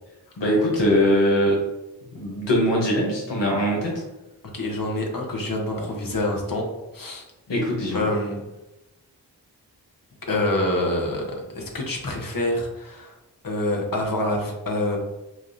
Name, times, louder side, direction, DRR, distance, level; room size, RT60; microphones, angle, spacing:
voice 1, 0.4-1.6 2.1-4.0 7.5-8.0, equal, 85° left, -3 dB, 1.0 m, -21 dB
voice 2, 4.5-6.7 6.9-7.2 7.9-8.4 10.3-13.1 13.4-15.0, left 1 dB, 55° left, 0 dB, 1.0 m, -26 dB
6.2 x 2.3 x 2.7 m, 1.0 s
wide cardioid pair, 50°, 42 cm